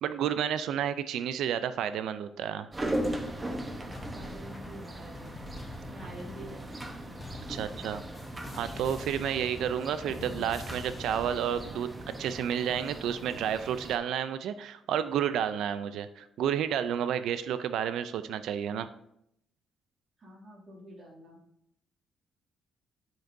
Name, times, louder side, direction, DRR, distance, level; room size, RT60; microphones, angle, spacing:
voice 1, 0.0-2.7 7.5-8.0 8.5-18.9, right 9 dB, 80° right, 12 dB, 0.3 m, -31 dB
sound 1, 2.7-14.0, right 1 dB, 25° right, 0.9 m, -39 dB
sound 2, 3.0-11.7, left 2 dB, 30° left, 0.9 m, -45 dB
voice 2, 3.9-5.3 5.7-7.0 7.4-7.8 20.2-21.4, equal, 50° right, -2 dB, 2.3 m, -48 dB
8.7 x 5.2 x 2.6 m, 0.74 s
cardioid pair, 90°, 0 cm